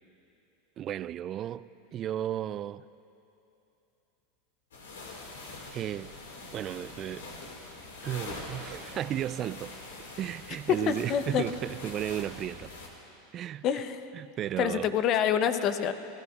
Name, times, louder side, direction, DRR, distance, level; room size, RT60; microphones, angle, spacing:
voice 1, 0.8-2.8 5.7-6.1 6.5-7.3 8.0-9.7 10.2-12.7 13.3-13.8 14.1-14.9, right 11 dB, 40° right, 0.3 m, -34 dB
sound 1, 4.7-12.9, left 2 dB, 85° left, 2.1 m, -44 dB
voice 2, 10.9-11.4 13.6-14.0 14.6-15.9, left 8 dB, 45° left, 0.7 m, -27 dB
28.5 x 15.5 x 2.5 m
hypercardioid pair, 95°, 0 cm